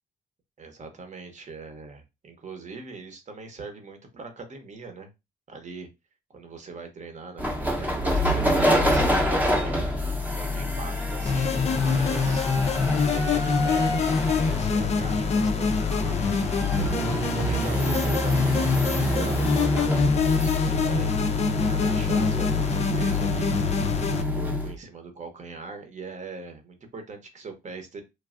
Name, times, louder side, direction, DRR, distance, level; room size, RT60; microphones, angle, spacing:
voice 1, 0.6-5.1 5.5-5.9 6.3-12.5 13.0-19.9 20.1-23.6 24.1-28.0, right 4 dB, 35° right, 6 dB, 0.9 m, -41 dB
sound 1, 7.4-24.7, left 1 dB, 10° right, 0.7 m, -27 dB
sound 2, 11.2-24.2, left 5 dB, 35° left, 0.4 m, -25 dB
3.2 x 2.2 x 2.4 m, 0.24 s
cardioid pair, 90°, 20 cm